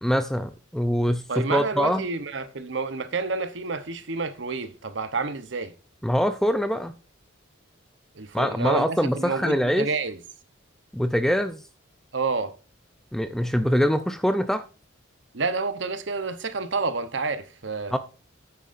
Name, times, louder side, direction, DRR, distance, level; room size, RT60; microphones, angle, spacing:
voice 1, 0.0-2.1 6.0-6.9 8.3-9.9 10.9-11.6 13.1-14.6 17.9-18.0, equal, ahead, 0.4 m, -24 dB
voice 2, 1.3-5.7 8.2-10.2 12.1-12.5 15.3-18.0, right 4 dB, 60° right, 0.9 m, -29 dB
9.5 x 8.6 x 2.5 m
head